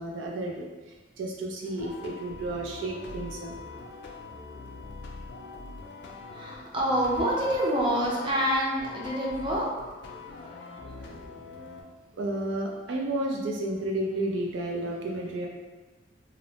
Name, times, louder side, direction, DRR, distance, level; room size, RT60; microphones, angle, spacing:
voice 1, 0.0-3.6 12.1-15.5, right 1 dB, 85° right, -1 dB, 0.4 m, -32 dB
sound 1, 1.6-11.8, left 3 dB, 65° left, 0.3 m, -43 dB
voice 2, 6.3-9.7 10.1-11.4, equal, 25° right, -4 dB, 0.5 m, -28 dB
2.5 x 2.0 x 2.8 m, 1.2 s
head